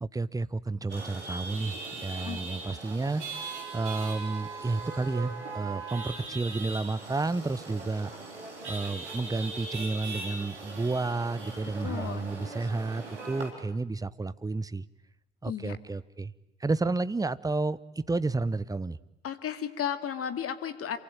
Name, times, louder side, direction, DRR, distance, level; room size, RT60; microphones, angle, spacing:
voice 1, 0.0-3.2 3.7-8.1 8.6-14.9 15.4-16.3 16.6-17.8 18.1-19.0, right 3 dB, 10° right, 17 dB, 0.9 m, -31 dB
Chatter / Vehicle horn car horn honking / Traffic noise roadway noise, 0.9-13.5, right 3 dB, 80° right, 3.9 m, -40 dB
voice 2, 11.8-12.4 15.5-15.8 19.2-21.0, left 8 dB, 40° left, 10 dB, 2.3 m, -34 dB
27.5 x 23.5 x 8.9 m, 0.86 s
figure-of-eight pair, 55°, 34 cm